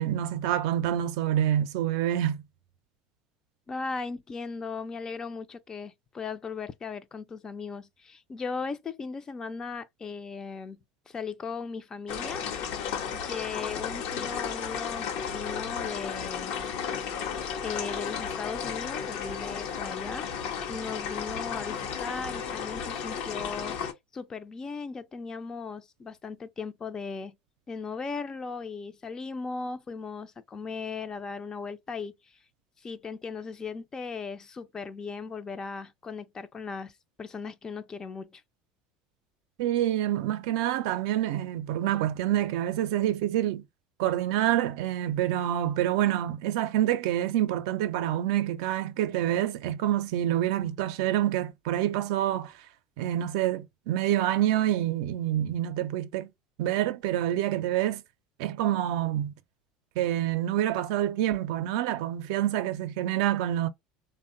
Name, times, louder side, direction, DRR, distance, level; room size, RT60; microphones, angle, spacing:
voice 1, 0.0-2.4 39.6-43.6 44.0-52.5 53.0-56.3 56.6-58.0 58.4-59.3 60.0-63.7, right 12 dB, 80° right, 0.4 m, -27 dB
voice 2, 3.7-10.8 11.1-12.4 13.1-16.5 17.6-23.8 24.1-27.4 27.7-32.1 32.8-36.9 37.2-38.4, left 5 dB, 25° left, 0.4 m, -37 dB
sound 1, 12.1-23.9, left 7 dB, 65° left, 0.7 m, -34 dB
3.4 x 2.1 x 2.5 m
supercardioid pair, 115°, 3 cm